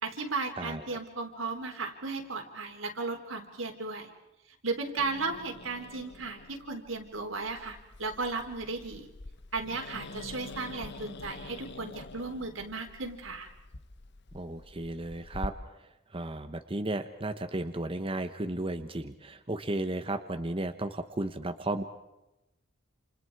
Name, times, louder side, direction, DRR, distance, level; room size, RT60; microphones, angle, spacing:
voice 1, 0.0-4.1 4.6-9.1 9.5-13.5, right 3 dB, 85° right, 3 dB, 3.8 m, -35 dB
Growling, 5.0-15.5, left 2 dB, 60° left, 1.0 m, -46 dB
voice 2, 14.3-15.5 16.1-21.8, right 2 dB, 25° right, 7 dB, 1.1 m, -34 dB
29.0 x 28.5 x 4.8 m, 0.95 s
head